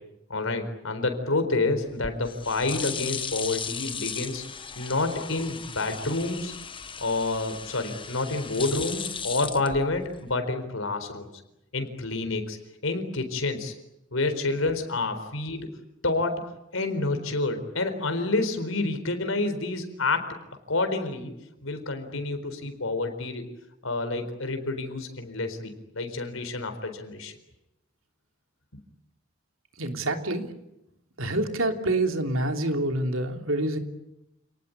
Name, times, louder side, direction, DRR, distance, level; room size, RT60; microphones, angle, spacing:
voice 1, 0.3-4.4 4.8-6.5 7.0-11.3 11.7-12.6 12.8-13.7 14.1-15.7 16.0-16.4 16.7-20.3 20.7-21.3 21.6-23.5 23.8-27.3, left 2 dB, 90° left, 7 dB, 4.2 m, -28 dB
sound 1, 1.9-10.3, left 6 dB, 25° left, 1.2 m, -36 dB
voice 2, 29.8-30.5 31.2-33.8, right 1 dB, 90° right, 5 dB, 3.2 m, -27 dB
28.5 x 19.0 x 9.9 m, 0.89 s
head